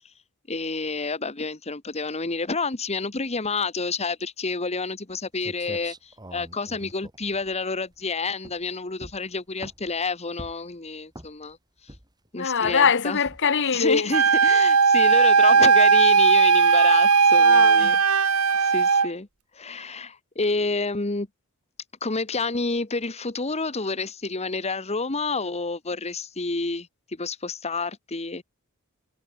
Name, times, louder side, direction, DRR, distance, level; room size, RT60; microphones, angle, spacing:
voice 1, 0.5-11.6 11.8-11.9 12.3-13.2 13.7-18.0 18.6-19.3 19.5-21.3 22.0-28.4, left 3 dB, 30° left, 1.5 m, -29 dB
sound 1, 5.1-5.2 5.4-8.0 8.4-8.7 9.0-10.0 10.4-10.7 11.1-11.5 11.9-12.3 12.6-12.9 13.3-13.6, right 1 dB, 20° right, 7.4 m, -43 dB
voice 2, 12.4-14.1 17.4-17.9, left 5 dB, 55° left, 1.2 m, -23 dB
Wind instrument woodwind instrument, 14.1-19.1, right 5 dB, 80° right, 1.5 m, -17 dB
head